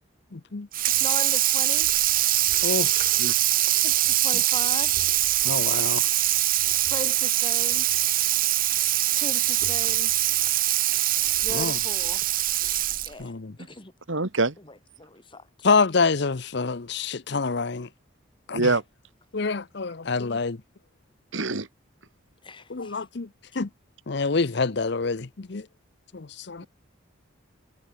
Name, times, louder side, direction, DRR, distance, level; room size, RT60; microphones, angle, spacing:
voice 1, 0.3-0.7 2.6-3.2 5.4-6.1 11.5-11.8 13.2-13.6 15.6-17.9 18.5-18.7 19.3-20.6 22.7-23.3 23.5-23.7 24.1-25.7 26.1-26.7, left 4 dB, 60° left, 0.8 m, -26 dB
Water tap faucet / Sink (filling or washing), 0.7-13.2, right 14 dB, 45° right, 1.0 m, -23 dB
voice 2, 1.0-1.9 3.8-4.9 6.9-7.9 9.2-10.1 11.4-12.2 13.0-13.9 14.6-15.5 22.4-23.0, left 2 dB, 25° left, 2.1 m, -38 dB
voice 3, 14.1-14.5 18.5-18.8 21.3-21.7, right 3 dB, 75° right, 2.1 m, -24 dB
head